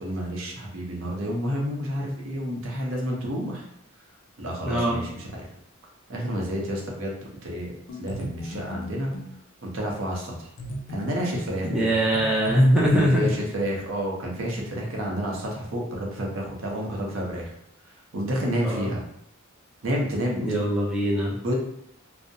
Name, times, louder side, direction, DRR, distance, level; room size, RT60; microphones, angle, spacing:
voice 1, 0.0-3.7 4.4-5.3 6.1-7.7 8.0-9.1 9.6-10.5 10.9-11.9 12.9-17.5 18.1-19.0 19.8-20.4 21.4-21.5, equal, 70° right, -2 dB, 0.6 m, -29 dB
voice 2, 4.6-5.0 11.7-13.3 18.6-18.9 20.4-21.4, equal, 5° right, -6 dB, 0.4 m, -22 dB
sound 1, 7.9-9.4 10.6-12.9, left 1 dB, 65° left, 0.4 m, -37 dB
2.6 x 2.0 x 2.6 m, 0.73 s
head